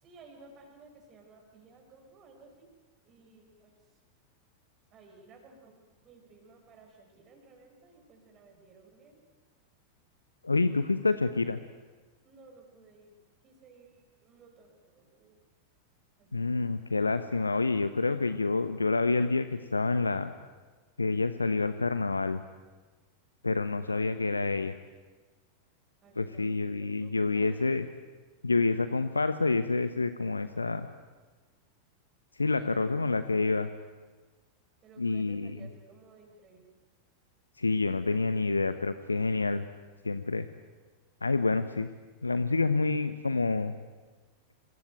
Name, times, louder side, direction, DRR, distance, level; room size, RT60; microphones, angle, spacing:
voice 1, 0.0-2.7 3.1-3.7 4.9-9.2 12.2-13.1 13.4-13.9 14.2-15.3 16.2-16.7 23.7-24.5 26.0-27.7 32.6-32.8 33.1-33.6 34.8-36.7, right 4 dB, 30° right, 2 dB, 5.6 m, -56 dB
voice 2, 10.4-11.6 16.3-20.3 21.0-22.4 23.4-24.7 26.2-27.9 28.4-30.9 32.4-33.7 35.0-35.7 37.6-39.6 40.0-40.5 41.2-41.9 42.2-43.7, left 3 dB, 80° left, 11 dB, 1.0 m, -28 dB
26.0 x 22.5 x 9.1 m, 1.3 s
figure-of-eight pair, 90°, 0 cm